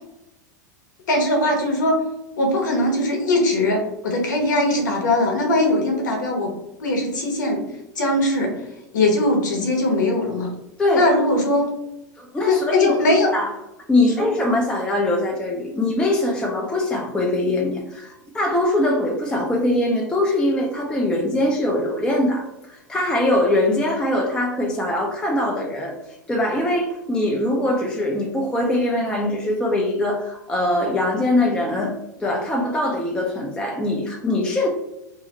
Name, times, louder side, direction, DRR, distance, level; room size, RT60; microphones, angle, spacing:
voice 1, 1.1-2.0 2.4-6.5 6.8-7.6 7.9-8.7 8.9-10.5 10.9-11.7 12.5-13.3 14.0-14.3, left 1 dB, 75° left, 1 dB, 0.8 m, -20 dB
voice 2, 12.2-12.9 13.3-13.5 13.9-26.0 26.3-34.7, left 1 dB, 10° left, -1 dB, 0.4 m, -22 dB
2.6 x 2.0 x 2.8 m, 0.92 s
hypercardioid pair, 95°, 10 cm